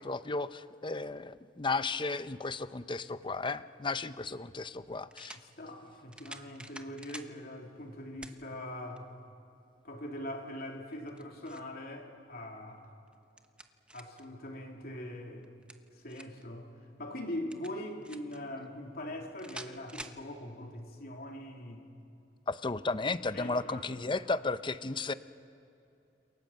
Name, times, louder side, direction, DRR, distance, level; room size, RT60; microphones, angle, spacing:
voice 1, 0.0-5.4 22.5-25.1, left 3 dB, 25° left, 13 dB, 0.7 m, -34 dB
sound 1, 3.9-4.0 5.1-5.5 6.1-7.3 8.2-8.4 9.0-9.1 10.9-11.7 13.1-14.3 15.4-16.4 17.5-18.4 19.4-20.2, right 1 dB, 5° right, 1.0 m, -48 dB
voice 2, 5.3-9.1 9.8-12.9 13.9-15.5 15.9-16.7 17.0-21.9 23.3-23.8, left 1 dB, 60° left, 1 dB, 3.5 m, -42 dB
28.0 x 26.0 x 7.6 m, 2.7 s
head